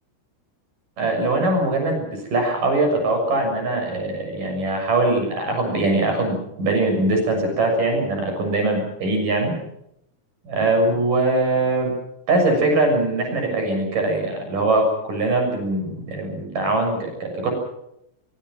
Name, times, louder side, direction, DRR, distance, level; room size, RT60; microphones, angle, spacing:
voice 1, 1.0-9.5 10.4-11.9 12.3-17.5, right 2 dB, 40° right, 3 dB, 7.9 m, -22 dB
24.0 x 24.0 x 6.1 m, 0.78 s
omnidirectional pair, 5.9 m